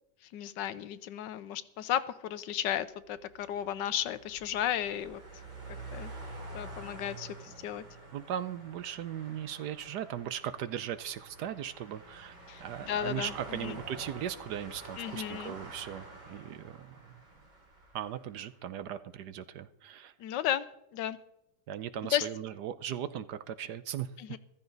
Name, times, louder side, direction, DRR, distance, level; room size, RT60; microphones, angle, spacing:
voice 1, 0.3-5.2 5.9-6.1 6.5-7.8 12.5-13.3 13.6-13.8 15.0-15.6 20.2-20.7 20.9-21.2 22.1-22.3 24.2-24.4, left 11 dB, 80° left, 15 dB, 1.3 m, -34 dB
sound 1, 3.1-18.5, right 2 dB, 90° right, 5.3 m, -48 dB
voice 2, 8.1-12.3 12.6-17.2 17.9-20.1 21.7-24.1, right 10 dB, 70° right, 13 dB, 1.2 m, -38 dB
14.5 x 13.5 x 4.0 m, 0.82 s
omnidirectional pair, 2.0 m